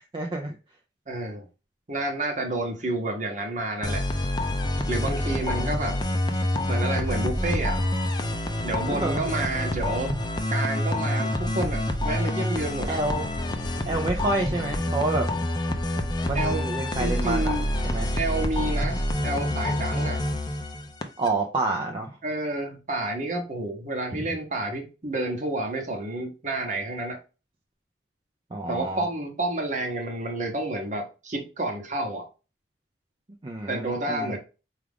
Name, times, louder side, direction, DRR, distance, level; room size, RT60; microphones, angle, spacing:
voice 1, 0.1-0.6 5.3-5.6 8.9-9.2 12.9-13.3 13.9-15.3 16.3-17.5 17.8-18.1 21.2-22.2 24.1-24.2 28.5-29.0 33.4-34.4, right 2 dB, 30° right, 1 dB, 0.5 m, -28 dB
voice 2, 1.1-1.5 1.9-4.0 4.9-6.0 6.7-7.8 8.6-10.1 10.5-12.9 16.3-16.7 17.0-17.7 18.1-20.2 22.2-27.2 28.7-32.3 33.7-34.4, right 2 dB, 45° right, 4 dB, 0.9 m, -29 dB
sound 1, 3.8-21.3, left 1 dB, 25° left, 0.5 m, -27 dB
4.7 x 2.4 x 3.4 m, 0.31 s
head